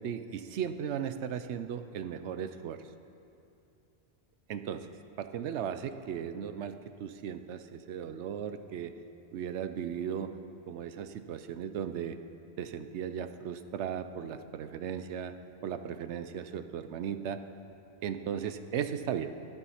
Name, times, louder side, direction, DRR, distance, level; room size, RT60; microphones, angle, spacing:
voice 1, 0.0-2.8 4.5-4.9 5.2-9.0 9.3-10.3 10.7-12.2 12.6-15.3 15.6-17.4 18.0-19.3, right 8 dB, 75° right, 10 dB, 0.9 m, -36 dB
11.5 x 11.0 x 5.6 m, 2.7 s
omnidirectional pair, 1.2 m